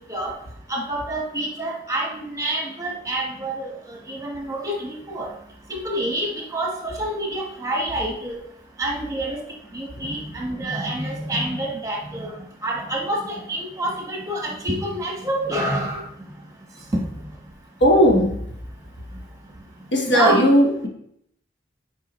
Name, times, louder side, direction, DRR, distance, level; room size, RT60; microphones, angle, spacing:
voice 1, 0.7-3.7 4.1-5.3 5.7-8.3 8.8-9.4 9.7-12.3 12.6-16.0 16.9-17.0 20.1-20.4, right 1 dB, 20° right, 0 dB, 1.1 m, -27 dB
voice 2, 17.8-18.4 19.9-20.9, equal, 80° left, 0 dB, 1.3 m, -16 dB
7.7 x 4.7 x 3.0 m, 0.72 s
head